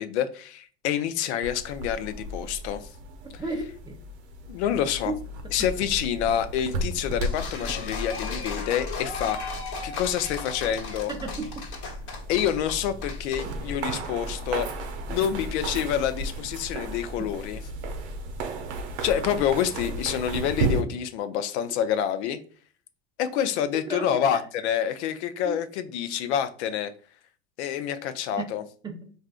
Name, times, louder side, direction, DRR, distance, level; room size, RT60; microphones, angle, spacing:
voice 1, 0.0-2.9 4.5-5.1 5.5-9.4 9.8-11.1 12.3-14.7 15.1-17.6 19.0-22.4 23.2-26.9 27.6-28.6, left 9 dB, 85° left, 0.5 m, -27 dB
sound 1, 1.4-20.8, right 3 dB, 85° right, 0.7 m, -35 dB
voice 2, 3.3-4.0 5.1-5.2 11.1-11.5 17.2-17.3 23.9-24.2 25.4-25.6 28.4-28.5 28.8-29.1, right 3 dB, 15° right, 0.4 m, -33 dB
Boat Water vehicle, 6.8-18.5, left 2 dB, 35° left, 0.7 m, -39 dB
sound 2, 7.2-13.4, left 4 dB, 65° left, 1.2 m, -37 dB
3.5 x 2.5 x 2.4 m
supercardioid pair, 110°, 33 cm